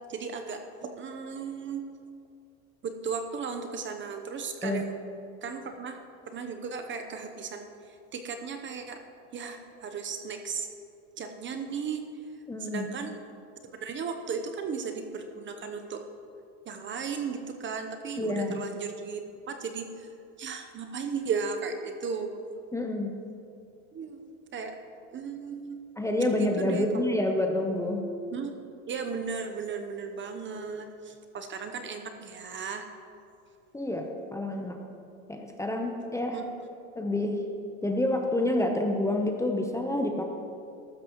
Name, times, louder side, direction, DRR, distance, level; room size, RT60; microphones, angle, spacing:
voice 1, 0.1-1.9 2.8-4.9 5.4-6.0 6.3-9.0 9.3-10.7 11.2-12.1 12.6-13.2 13.7-16.0 16.7-20.1 20.4-22.4 23.9-24.8 25.1-25.9 26.4-26.9 28.3-28.5 28.9-32.9 36.3-36.5, right 5 dB, 30° right, 6 dB, 0.8 m, -35 dB
voice 2, 12.5-12.9 18.2-18.6 22.7-23.1 26.0-28.0 33.7-34.8 35.3-36.4 37.0-37.4 37.8-40.2, left 1 dB, 5° left, 3 dB, 0.8 m, -28 dB
14.5 x 12.5 x 3.0 m, 2.5 s
supercardioid pair, 120°, 42 cm